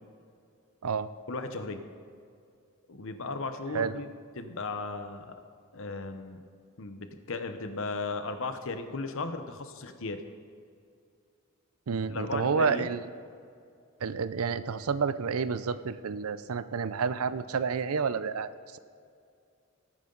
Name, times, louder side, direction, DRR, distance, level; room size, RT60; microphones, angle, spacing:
voice 1, 1.3-1.9 2.9-5.4 5.7-6.4 6.8-10.2 12.1-13.0, left 3 dB, 65° left, 8 dB, 1.0 m, -36 dB
voice 2, 11.9-13.0 14.0-18.8, right 5 dB, 85° right, 14 dB, 0.5 m, -30 dB
18.0 x 9.3 x 4.0 m, 2.4 s
head